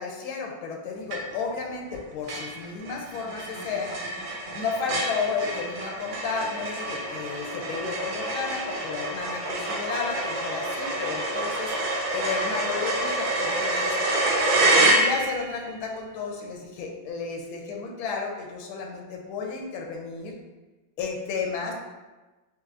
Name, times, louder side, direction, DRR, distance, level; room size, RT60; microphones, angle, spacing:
voice 1, 0.0-3.9 4.5-11.7 12.1-14.0 14.5-20.3 21.0-21.7, left 5 dB, 90° left, 1 dB, 1.5 m, -32 dB
sound 1, 1.1-1.5 1.9-2.0 2.3-15.5, right 2 dB, 75° right, 1.5 m, -27 dB
5.3 x 2.5 x 2.5 m, 1.2 s
omnidirectional pair, 2.2 m